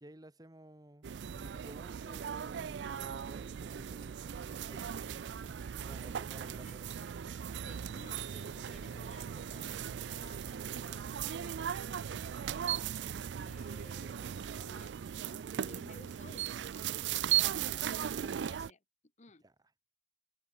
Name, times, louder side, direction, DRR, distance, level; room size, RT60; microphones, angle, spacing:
voice 1, 0.0-6.9 17.4-17.9 19.4-19.5, right 1 dB, 20° right, 1.6 m, -55 dB
sound 1, 1.0-18.7, right 9 dB, 75° right, 0.4 m, -38 dB
sound 2, 3.6-14.3, right 1 dB, 55° right, 1.9 m, -62 dB
voice 2, 6.0-7.1 7.6-12.5 13.4-15.3 15.5-16.5 17.3-18.8 19.2-19.4, left 2 dB, 40° left, 1.2 m, -57 dB
head